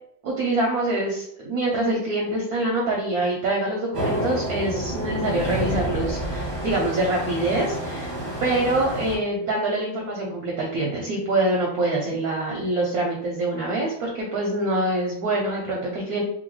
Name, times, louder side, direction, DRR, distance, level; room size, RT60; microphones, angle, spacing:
voice 1, 0.2-8.1 8.4-16.2, right 2 dB, 70° right, -1 dB, 0.9 m, -25 dB
sound 1, 3.9-9.2, right 1 dB, 40° right, 0.6 m, -28 dB
3.0 x 2.6 x 3.0 m, 0.70 s
omnidirectional pair, 2.1 m